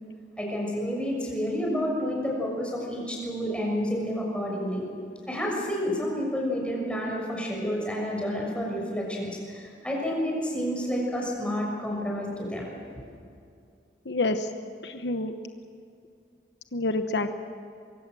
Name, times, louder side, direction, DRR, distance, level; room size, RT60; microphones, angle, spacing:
voice 1, 0.4-4.8 5.3-12.7, equal, 5° left, -2 dB, 6.4 m, -29 dB
voice 2, 14.0-14.5 14.8-15.3 16.7-17.3, left 2 dB, 75° left, 7 dB, 1.1 m, -27 dB
24.0 x 23.5 x 7.7 m, 2.4 s
head